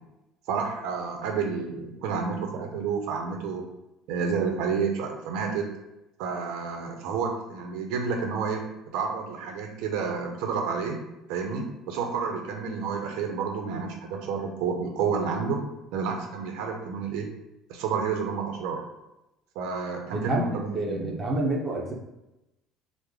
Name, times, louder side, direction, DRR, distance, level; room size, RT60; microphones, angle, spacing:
voice 1, 0.5-3.7 4.1-5.7 6.2-8.7 8.9-11.0 11.3-15.6 15.9-17.3 17.7-18.8 19.6-21.2, right 5 dB, 80° right, 3 dB, 0.6 m, -30 dB
voice 2, 20.1-20.5 20.7-21.9, right 2 dB, 20° right, -2 dB, 0.6 m, -28 dB
3.2 x 2.0 x 3.6 m, 0.93 s
cardioid pair, 135°, 0 cm